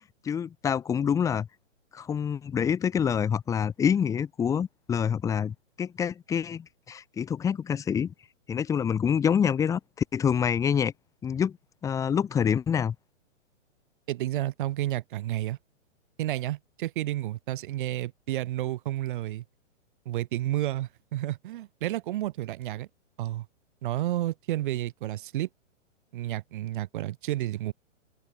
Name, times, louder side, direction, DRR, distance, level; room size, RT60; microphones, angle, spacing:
voice 1, 0.2-1.5 1.9-8.1 8.5-9.8 10.1-10.9 11.2-11.5 11.8-12.9, left 7 dB, 10° left, 1.5 m, -26 dB
voice 2, 14.1-15.6 16.2-19.4 20.0-22.9 23.2-23.5 23.8-25.5 26.1-27.7, right 14 dB, 40° right, 4.7 m, -31 dB
hypercardioid pair, 165°, 37 cm